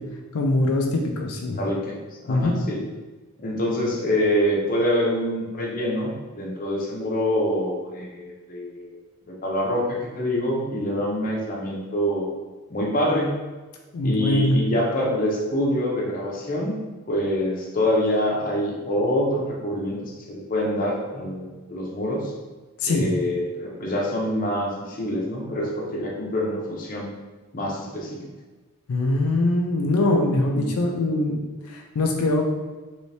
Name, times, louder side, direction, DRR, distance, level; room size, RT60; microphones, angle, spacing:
voice 1, 0.3-1.6 2.3-2.6 13.9-14.6 22.8-23.1 28.9-32.4, left 2 dB, 80° left, 1 dB, 0.4 m, -22 dB
voice 2, 1.6-2.0 2.2-2.8 3.4-9.0 9.3-12.3 12.7-13.3 14.0-16.8 17.1-22.3 22.8-27.1 27.5-28.2 30.5-30.7, equal, 40° left, -2 dB, 0.6 m, -25 dB
3.2 x 3.1 x 2.7 m, 1.3 s
head